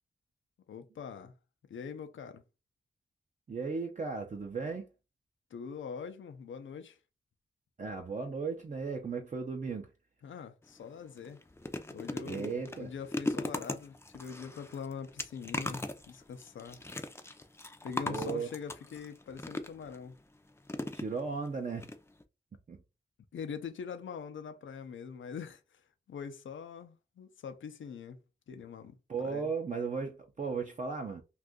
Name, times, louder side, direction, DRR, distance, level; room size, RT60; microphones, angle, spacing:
voice 1, 0.7-1.4 1.7-2.4 5.5-7.0 10.2-11.4 11.9-16.8 17.8-20.2 23.3-28.2 28.5-29.5, left 6 dB, 85° left, 0.5 m, -43 dB
voice 2, 3.5-4.9 7.8-9.9 12.2-12.9 18.1-18.5 20.9-21.9 22.7-22.8 29.1-31.2, right 4 dB, 40° right, 0.5 m, -36 dB
sound 1, 10.6-10.8 11.2-20.0 20.7-21.5 21.8-21.9 22.2-22.3, left 2 dB, 15° left, 0.4 m, -39 dB
2.6 x 2.4 x 3.5 m
wide cardioid pair, 85°, 19 cm